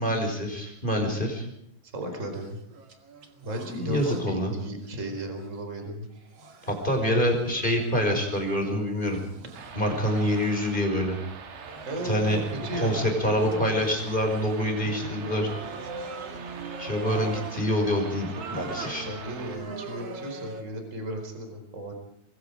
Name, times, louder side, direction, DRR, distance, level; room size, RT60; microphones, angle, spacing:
voice 1, 0.0-1.4 3.7-4.5 6.7-9.2 9.7-11.2 12.0-12.4 12.7-15.5 16.8-19.1, equal, 10° left, 3 dB, 5.0 m, -26 dB
voice 2, 1.8-2.6 3.4-6.1 11.9-13.9 15.0-15.5 17.0-17.4 19.0-21.9, equal, 15° right, 5 dB, 4.1 m, -35 dB
sound 1, 2.3-4.3 4.6-5.5 6.2-11.0 11.5-20.6, right 4 dB, 40° right, 2.4 m, -42 dB
sound 2, 9.6-19.6, right 5 dB, 90° right, 5.6 m, -43 dB
26.0 x 22.0 x 5.1 m, 0.74 s
omnidirectional pair, 5.7 m